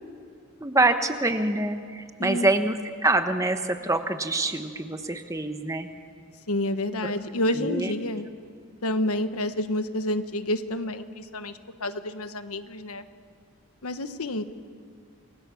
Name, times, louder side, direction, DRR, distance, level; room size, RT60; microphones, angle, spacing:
voice 1, 0.6-5.9 7.0-7.1 7.5-7.9, right 2 dB, 15° right, 7 dB, 1.1 m, -25 dB
voice 2, 6.5-8.3 8.8-11.5 11.8-13.0 13.8-14.4, left 1 dB, 85° left, 9 dB, 1.3 m, -29 dB
29.0 x 21.5 x 7.1 m, 2.1 s
head